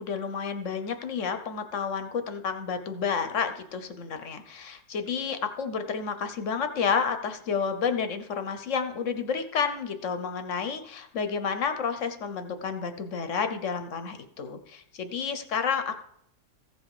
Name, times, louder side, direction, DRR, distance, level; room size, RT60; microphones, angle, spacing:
voice 1, 0.0-16.0, left 6 dB, 55° left, 9 dB, 1.1 m, -30 dB
15.0 x 5.5 x 4.8 m, 0.69 s
omnidirectional pair, 1.7 m